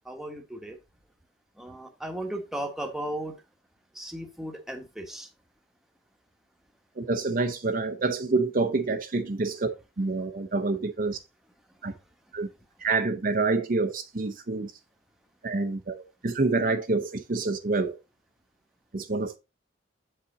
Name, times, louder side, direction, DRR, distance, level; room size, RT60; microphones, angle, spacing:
voice 1, 0.0-0.8 1.5-3.3 3.9-5.3 11.7-12.0, right 1 dB, ahead, 1.3 m, -36 dB
voice 2, 7.0-9.7 10.0-11.2 11.8-11.9 12.3-12.5 12.8-14.7 15.4-17.9 18.9-19.4, right 3 dB, 45° right, 0.7 m, -27 dB
7.7 x 5.6 x 4.0 m
head